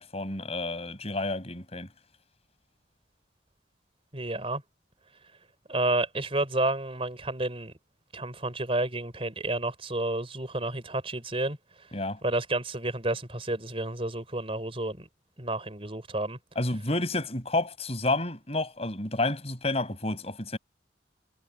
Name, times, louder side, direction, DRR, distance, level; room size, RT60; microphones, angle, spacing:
voice 1, 0.0-1.9 11.9-12.2 16.6-20.6, left 2 dB, 35° left, 5.6 m, -30 dB
voice 2, 4.1-4.6 5.7-7.7 8.1-11.6 12.2-15.1 15.4-16.4, right 2 dB, 30° right, 4.2 m, -30 dB
head